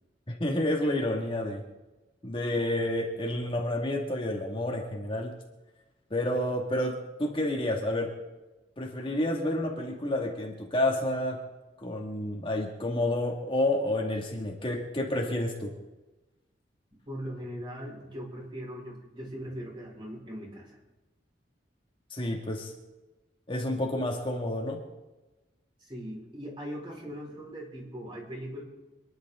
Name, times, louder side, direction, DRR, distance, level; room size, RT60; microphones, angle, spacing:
voice 1, 0.3-1.6 2.2-5.3 6.1-6.9 7.2-8.1 8.8-11.4 11.8-15.7 22.1-22.7 23.5-24.8, left 1 dB, 30° left, 0 dB, 2.1 m, -29 dB
voice 2, 17.1-20.8 25.8-28.6, equal, 30° right, -2 dB, 4.8 m, -40 dB
27.0 x 11.0 x 3.8 m, 1.1 s
head